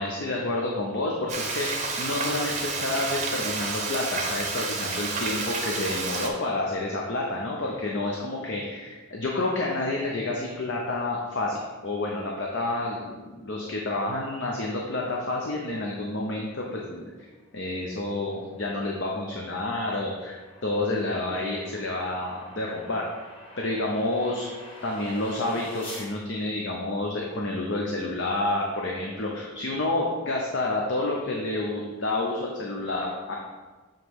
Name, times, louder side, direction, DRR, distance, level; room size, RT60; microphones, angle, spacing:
voice 1, 0.0-17.1 17.5-20.4 20.6-23.1 23.6-24.5 24.8-33.4, left 2 dB, 55° left, -2 dB, 0.7 m, -29 dB
Frying (food), 1.3-6.3, right 3 dB, 30° right, 0.7 m, -30 dB
sound 1, 17.4-26.1, left 1 dB, 25° left, 1.5 m, -47 dB
7.4 x 3.0 x 4.8 m, 1.3 s
head